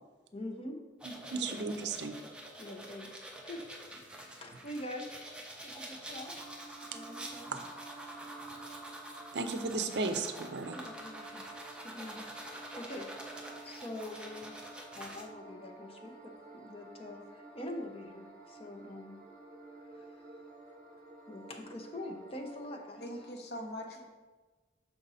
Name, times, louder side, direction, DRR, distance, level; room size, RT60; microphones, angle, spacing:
voice 1, 0.3-0.8 1.3-1.5 2.6-3.1 3.5-6.5 6.9-7.6 10.7-11.4 11.8-12.3 12.8-13.1 13.4-14.5 14.9-19.2 19.9-20.2 21.3-23.1, left 1 dB, 30° left, 2 dB, 0.8 m, -45 dB
sound 1, 1.0-15.2, right 1 dB, 5° right, 0.5 m, -47 dB
voice 2, 1.3-2.1 7.5-7.6 9.3-10.8, right 3 dB, 70° right, 8 dB, 0.5 m, -34 dB
sound 2, 6.2-23.3, right 2 dB, 45° right, 1.1 m, -52 dB
voice 3, 23.0-24.0, equal, 60° left, 2 dB, 0.9 m, -42 dB
5.9 x 5.1 x 4.1 m, 1.3 s
head